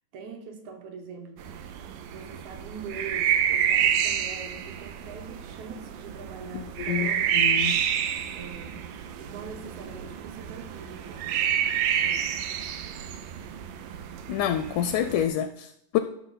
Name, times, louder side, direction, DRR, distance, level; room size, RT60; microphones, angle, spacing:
voice 1, 0.1-1.6 2.1-7.3 8.3-8.9 9.2-11.5 12.0-12.3, right 5 dB, 65° right, 5 dB, 2.2 m, -42 dB
sound 1, 1.4-15.3, right 9 dB, 85° right, 2.4 m, -29 dB
voice 2, 6.5-7.8 14.3-16.0, left 10 dB, 80° left, 10 dB, 1.8 m, -28 dB
13.0 x 6.1 x 4.0 m, 0.77 s
omnidirectional pair, 3.9 m